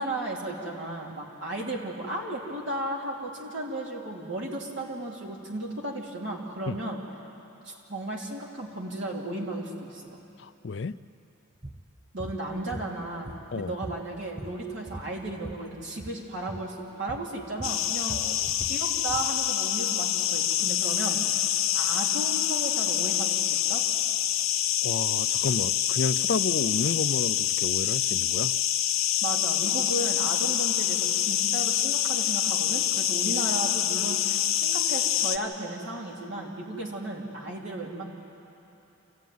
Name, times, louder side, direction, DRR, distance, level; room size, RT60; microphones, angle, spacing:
voice 1, 0.0-7.0 7.6-10.2 12.1-18.2 18.6-21.2 21.7-23.8 29.2-38.0, right 2 dB, 60° right, -2 dB, 3.1 m, -35 dB
voice 2, 10.4-11.0 13.5-13.7 18.1-18.5 24.8-28.5, left 4 dB, 55° left, 14 dB, 0.4 m, -31 dB
sound 1, 11.6-11.8 12.2-12.4 12.7-13.6 13.8-15.6 15.9-16.2 16.5-16.7 17.1-17.3 17.6-19.3, right 1 dB, 20° right, 0.9 m, -40 dB
sound 2, 17.6-35.4, left 11 dB, 80° left, 0.9 m, -26 dB
27.0 x 14.5 x 9.3 m, 3.0 s
head